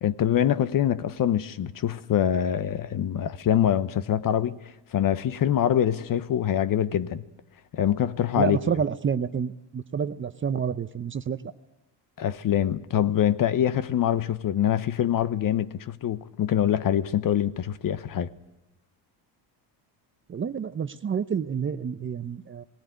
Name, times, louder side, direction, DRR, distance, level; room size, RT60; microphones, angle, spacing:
voice 1, 0.0-4.6 4.9-7.2 7.7-8.6 12.2-18.3, left 10 dB, 45° left, 0.9 m, -24 dB
voice 2, 8.4-11.5 20.3-22.6, right 7 dB, 25° right, 0.7 m, -29 dB
18.5 x 17.5 x 9.3 m
cardioid pair, 110°, 46 cm